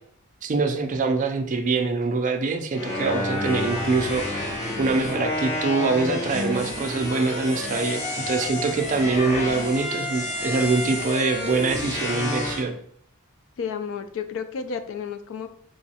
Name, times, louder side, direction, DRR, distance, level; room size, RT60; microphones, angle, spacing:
voice 1, 0.4-4.5 4.8-12.8, right 4 dB, 35° right, 6 dB, 0.3 m, -24 dB
sound 1, 2.7-12.6, left 2 dB, 30° left, 1.1 m, -29 dB
voice 2, 13.6-15.5, left 6 dB, 60° left, 10 dB, 0.3 m, -31 dB
3.5 x 3.0 x 2.8 m, 0.64 s
head